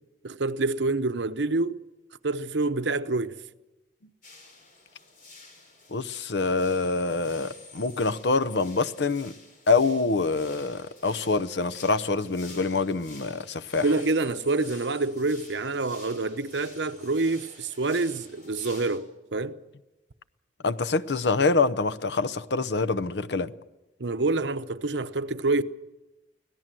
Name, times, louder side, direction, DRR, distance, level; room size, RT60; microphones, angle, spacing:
voice 1, 0.2-1.8 2.2-3.3 13.8-19.6 24.0-25.6, right 3 dB, 85° right, 0.9 m, -27 dB
sound 1, 4.2-19.0, left 3 dB, 50° left, 4.9 m, -50 dB
voice 2, 5.9-9.3 9.7-13.9 20.6-23.5, left 3 dB, 75° left, 0.8 m, -25 dB
24.5 x 17.0 x 7.6 m
head